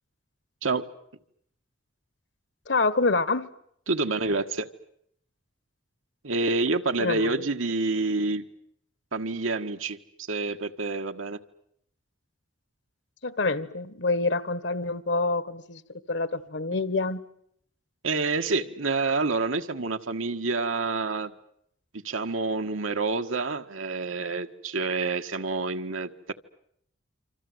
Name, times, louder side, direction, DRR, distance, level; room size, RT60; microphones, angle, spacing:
voice 1, 2.7-3.5 7.0-7.4 13.2-15.8 16.1-17.2, left 3 dB, 60° left, 16 dB, 1.4 m, -26 dB
voice 2, 3.9-4.7 6.2-8.4 9.1-11.4 18.0-21.3 21.9-26.3, right 3 dB, 90° right, 6 dB, 1.6 m, -28 dB
27.0 x 26.0 x 8.0 m, 0.71 s
head